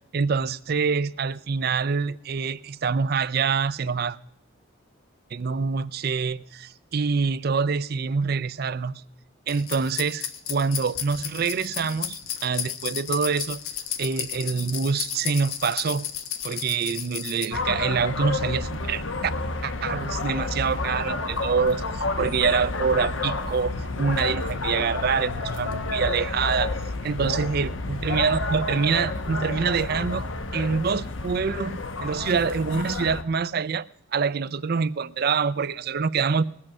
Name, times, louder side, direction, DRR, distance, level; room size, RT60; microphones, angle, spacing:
voice 1, 0.1-4.2 5.3-9.0 9.5-13.6 14.0-16.1 16.4-19.3 19.6-26.7 27.0-30.2 30.5-33.9 34.1-36.4, right 5 dB, 45° right, 0.4 m, -26 dB
sound 1, 9.5-17.4, left 9 dB, 85° left, 1.2 m, -33 dB
sound 2, 17.5-33.2, left 2 dB, 65° left, 0.9 m, -30 dB
20.0 x 7.7 x 6.0 m
head